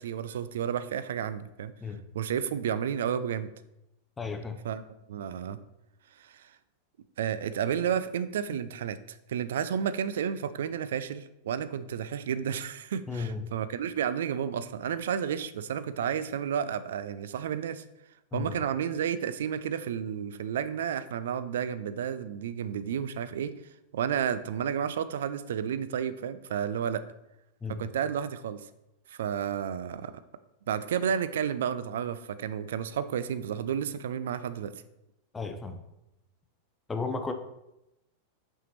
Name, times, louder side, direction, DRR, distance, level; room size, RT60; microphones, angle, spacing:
voice 1, 0.0-1.7 2.1-3.5 4.6-4.8 5.1-5.6 6.2-6.5 7.2-17.8 18.3-23.5 23.9-27.0 27.7-28.7 29.1-30.1 30.7-34.7, right 8 dB, 60° right, 13 dB, 0.3 m, -31 dB
voice 2, 4.2-4.6 8.5-8.6 13.1-13.5 18.3-18.5 27.6-27.9 35.3-35.8 36.9-37.3, left 4 dB, 15° left, 7 dB, 0.5 m, -34 dB
5.6 x 5.4 x 3.1 m, 0.88 s
figure-of-eight pair, 90°, 0 cm